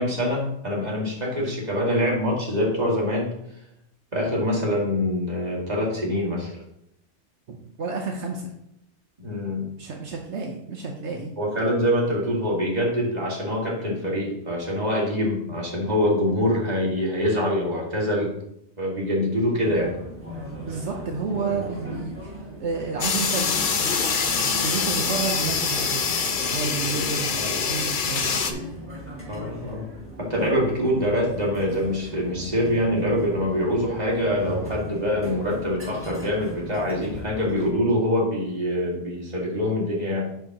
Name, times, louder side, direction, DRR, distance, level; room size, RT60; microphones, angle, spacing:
voice 1, 0.0-3.3 4.1-6.5 9.2-9.7 11.4-18.3 18.8-19.9 27.4-27.7 29.3-29.9 30.2-40.3, left 1 dB, 35° right, -3 dB, 2.3 m, -24 dB
voice 2, 7.5-8.5 9.8-11.3 20.6-24.0 24.3-26.1 26.5-28.4, right 4 dB, 75° right, 1 dB, 1.2 m, -31 dB
sound 1, 19.6-37.7, equal, 10° right, 1.8 m, -37 dB
sound 2, 23.0-28.5, left 6 dB, 50° left, 0.9 m, -25 dB
10.0 x 7.4 x 3.0 m, 0.77 s
omnidirectional pair, 1.2 m